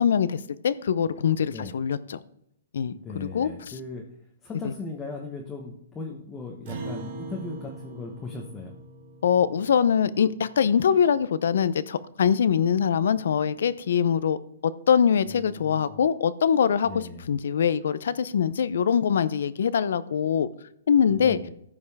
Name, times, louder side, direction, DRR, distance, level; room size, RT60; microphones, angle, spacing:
voice 1, 0.0-2.2 2.7-3.5 4.6-4.7 9.2-14.4 14.6-20.5 20.9-21.4, left 7 dB, 70° left, 17 dB, 0.6 m, -23 dB
voice 2, 2.9-4.1 4.4-8.7 15.3-16.0 16.8-17.3 21.1-21.5, left 3 dB, 15° left, 0 dB, 1.0 m, -38 dB
Acoustic guitar, 6.7-11.3, right 3 dB, 50° right, 2.5 m, -41 dB
14.5 x 5.4 x 3.5 m, 0.76 s
hypercardioid pair, 155°, 0 cm